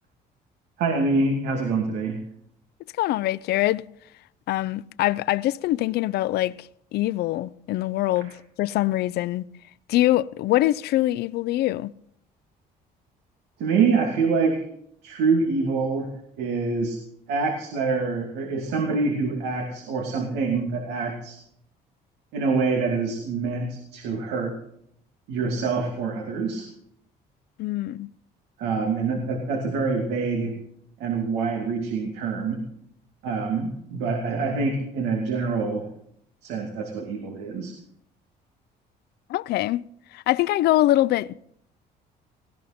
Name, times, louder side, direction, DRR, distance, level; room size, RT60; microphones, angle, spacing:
voice 1, 0.8-2.2 13.6-14.7 15.0-16.1 16.4-17.0 17.3-21.4 22.3-24.6 25.3-26.7 28.6-30.6 31.0-32.6 33.2-35.9 36.4-37.7, right 4 dB, 90° right, 2.7 m, -25 dB
voice 2, 3.0-3.8 4.5-9.4 9.9-11.9 27.6-28.1 39.3-39.8 40.1-41.3, left 15 dB, 75° left, 0.6 m, -24 dB
18.0 x 18.0 x 4.3 m
cardioid pair, 110°, 17 cm